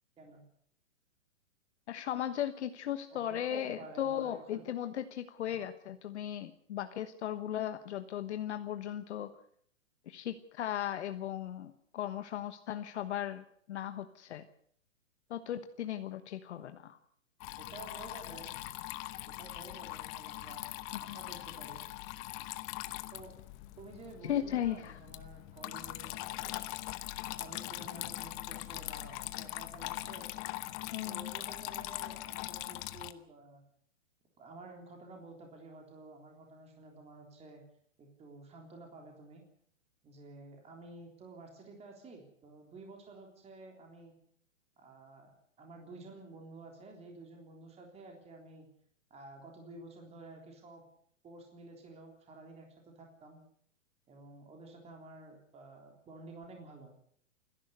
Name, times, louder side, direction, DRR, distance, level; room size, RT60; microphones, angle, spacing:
voice 1, 1.9-9.3 10.1-14.5 15.3-17.0 21.1-21.2 24.2-25.0 30.9-31.3, left 11 dB, 60° left, 9 dB, 1.3 m, -37 dB
voice 2, 3.1-4.6 5.5-5.6 17.6-18.5 19.2-21.8 23.1-23.4 23.8-26.7 27.4-30.3 31.0-33.7 34.4-37.6 38.0-39.4 40.0-44.1 44.8-45.3 45.6-48.7 49.1-50.8 51.2-53.4 54.1-56.9, right 2 dB, 15° right, 2 dB, 3.6 m, -51 dB
Water tap faucet / Trickle dribble, 17.4-33.1, left 18 dB, 25° left, 0.9 m, -42 dB
28.5 x 11.0 x 8.1 m, 0.63 s
hypercardioid pair, 140°, 38 cm